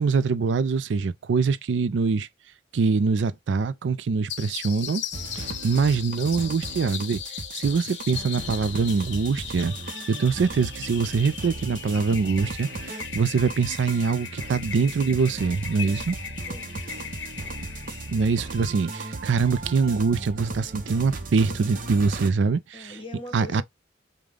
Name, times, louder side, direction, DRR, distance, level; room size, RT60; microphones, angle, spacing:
voice 1, 0.0-2.3 2.7-5.0 5.3-7.2 7.5-9.7 10.1-16.1 18.1-22.9 23.3-23.6, right 5 dB, 75° right, 0.4 m, -24 dB
sound 1, 4.3-19.5, left 9 dB, 75° left, 0.7 m, -38 dB
sound 2, 5.1-22.3, right 2 dB, 45° right, 0.8 m, -36 dB
voice 2, 16.5-17.2 22.7-23.6, left 1 dB, 30° left, 1.2 m, -42 dB
5.0 x 2.2 x 3.6 m
head